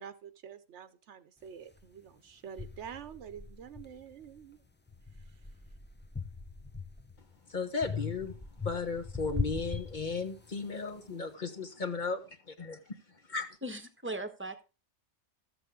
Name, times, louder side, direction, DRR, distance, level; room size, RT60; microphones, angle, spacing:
voice 1, 0.0-4.6, right 8 dB, 80° right, 1.0 m, -47 dB
sound 1, 1.8-1.9 2.6-4.4 4.9-7.2 7.8-10.6, left 4 dB, 15° left, 0.3 m, -40 dB
voice 2, 7.5-8.3 8.6-12.2 12.5-12.8 13.3-13.5, left 4 dB, 45° left, 1.4 m, -35 dB
voice 3, 13.6-14.6, right 1 dB, 10° right, 1.1 m, -38 dB
13.5 x 7.7 x 3.8 m
omnidirectional pair, 1.2 m